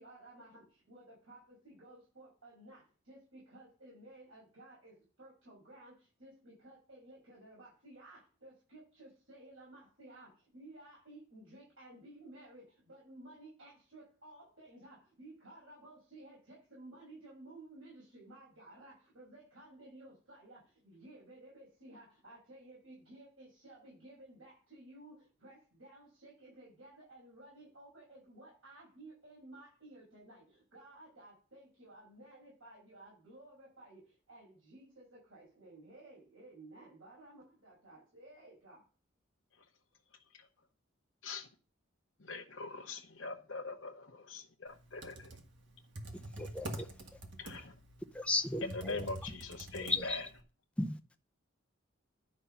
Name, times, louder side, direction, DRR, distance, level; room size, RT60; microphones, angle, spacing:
voice 1, 0.0-38.9, right 1 dB, 75° right, -6 dB, 6.7 m, -55 dB
voice 2, 42.2-45.3 47.4-47.7 48.6-50.3, left 3 dB, 60° left, 1 dB, 0.9 m, -42 dB
Computer keyboard, 44.8-50.4, right 1 dB, 55° right, 1.5 m, -46 dB
voice 3, 46.4-46.9 48.1-49.0 49.8-50.2 50.8-51.0, left 2 dB, 5° left, 7 dB, 0.5 m, -35 dB
11.0 x 5.2 x 5.7 m, 0.35 s
head